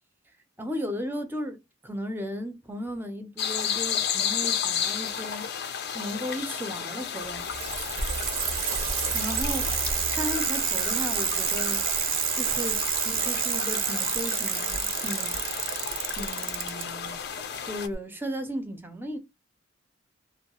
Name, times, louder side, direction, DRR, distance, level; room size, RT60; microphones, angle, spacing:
voice 1, 0.6-5.5 5.9-7.5 9.1-9.7 10.1-11.8 12.3-15.4 16.1-17.2 17.7-19.2, equal, 10° right, 0.4 m, -35 dB
sound 1, 3.4-17.9, left 8 dB, 50° left, 0.4 m, -33 dB
Bicycle, 7.2-16.8 17.9-18.0, right 8 dB, 65° right, 0.5 m, -29 dB
2.3 x 2.1 x 2.8 m
head